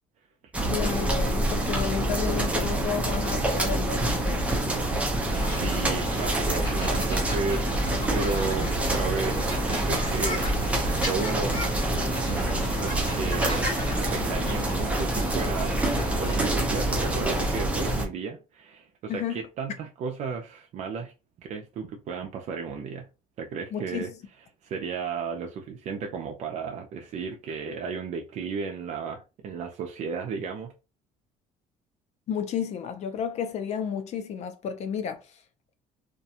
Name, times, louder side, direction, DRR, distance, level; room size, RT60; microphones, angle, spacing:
sound 1, 0.5-18.1, right 1 dB, 10° right, 0.6 m, -26 dB
voice 1, 0.7-4.5 19.1-19.4 23.7-24.1 32.3-35.2, left 7 dB, 50° left, 0.5 m, -32 dB
sound 2, 5.3-16.5, equal, 30° left, 1.0 m, -38 dB
voice 2, 5.6-7.7 8.1-9.4 9.7-10.4 11.0-11.5 12.2-13.6 14.0-15.8 16.1-21.1 21.4-23.1 23.4-24.1 24.6-30.7, right 5 dB, 55° right, 0.4 m, -33 dB
2.4 x 2.2 x 2.7 m
cardioid pair, 125°, 15 cm